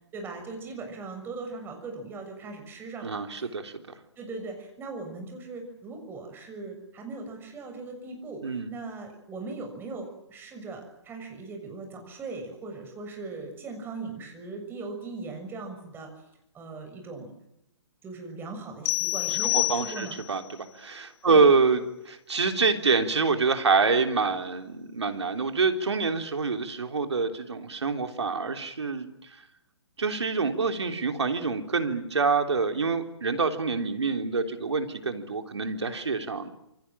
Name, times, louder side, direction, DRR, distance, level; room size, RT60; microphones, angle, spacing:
voice 1, 0.1-3.5 4.2-16.1 16.5-17.3 18.0-20.2 21.3-21.4, right 3 dB, 15° right, 4 dB, 6.7 m, -39 dB
voice 2, 3.0-3.8 8.4-8.7 19.4-29.3 30.0-36.5, right 4 dB, 75° right, 6 dB, 3.7 m, -26 dB
sound 1, 18.9-20.4, left 22 dB, 20° left, 1.4 m, -28 dB
27.5 x 24.0 x 7.5 m, 0.84 s
figure-of-eight pair, 135°, 15 cm